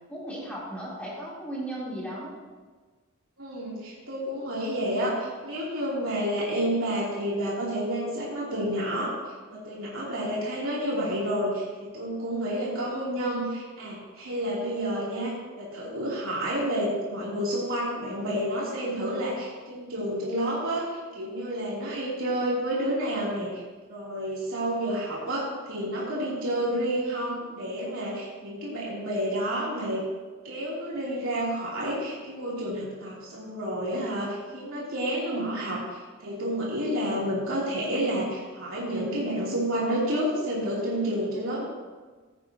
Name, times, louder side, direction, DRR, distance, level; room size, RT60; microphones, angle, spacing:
voice 1, 0.1-2.3, right 1 dB, 5° left, -7 dB, 3.4 m, -36 dB
voice 2, 3.4-9.1 9.5-23.6 23.9-30.0 30.4-41.6, equal, 80° right, -7 dB, 3.2 m, -30 dB
17.0 x 9.0 x 2.9 m, 1.4 s
head